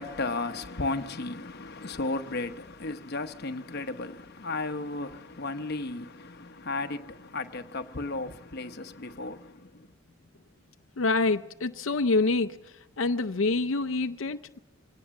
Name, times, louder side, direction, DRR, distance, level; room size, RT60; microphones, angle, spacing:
voice 1, 0.0-9.9, left 3 dB, 55° left, 1.0 m, -34 dB
voice 2, 11.0-14.6, left 3 dB, 85° left, 0.6 m, -27 dB
24.0 x 17.5 x 7.1 m
head